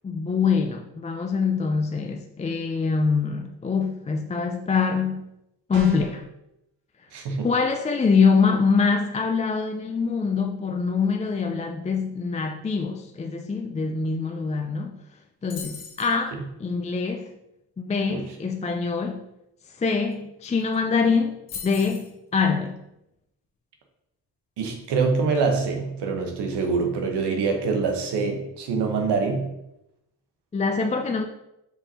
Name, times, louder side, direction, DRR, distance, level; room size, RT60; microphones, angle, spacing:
voice 1, 0.0-5.3 5.7-6.2 7.4-15.0 15.4-17.3 17.8-19.2 19.8-22.8 30.5-31.2, left 5 dB, 20° left, 4 dB, 0.4 m, -24 dB
sound 1, 5.7-6.3, equal, 45° right, 1.7 m, -35 dB
voice 2, 7.1-7.5 18.1-18.2 24.6-29.5, right 4 dB, 85° right, 3 dB, 1.3 m, -25 dB
sound 2, 15.5-16.2 20.1-20.2 20.4-20.8 21.5-22.1, left 6 dB, 80° left, 1.8 m, -38 dB
5.4 x 4.4 x 4.2 m, 0.85 s
cardioid pair, 115°, 40 cm